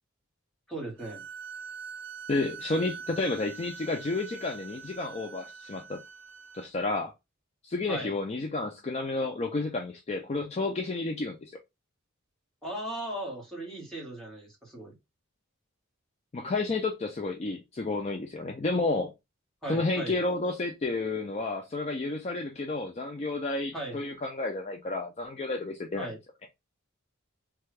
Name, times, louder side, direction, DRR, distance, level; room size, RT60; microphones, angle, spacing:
voice 1, 0.7-1.2 7.9-8.1 12.6-14.9 19.6-20.2 23.7-24.0 26.0-26.2, right 1 dB, 5° left, 1.5 m, -37 dB
sound 1, 1.0-6.7, right 6 dB, 65° right, 0.6 m, -44 dB
voice 2, 2.3-6.0 6.5-7.1 7.6-11.6 16.3-19.1 19.7-26.1, left 3 dB, 30° left, 0.4 m, -31 dB
3.2 x 2.3 x 3.3 m
head